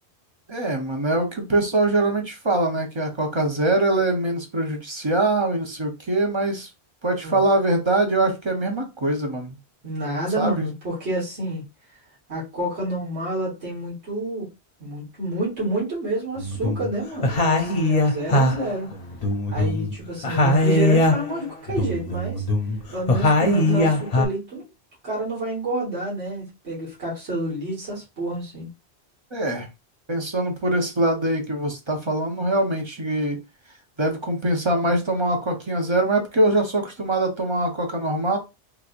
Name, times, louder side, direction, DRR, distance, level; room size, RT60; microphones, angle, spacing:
voice 1, 0.5-6.7 7.0-9.6 10.4-10.7 29.3-29.7 30.1-33.4 34.0-38.4, right 2 dB, 30° right, 0.8 m, -23 dB
voice 2, 9.8-11.6 12.3-14.5 14.8-18.9 19.5-22.4 22.9-24.7 25.0-28.7, right 1 dB, 90° right, 2.0 m, -29 dB
sound 1, 16.4-16.9 17.2-20.0 20.2-21.4 21.7-24.3, left 1 dB, 40° left, 0.7 m, -21 dB
3.6 x 3.1 x 2.5 m
omnidirectional pair, 1.1 m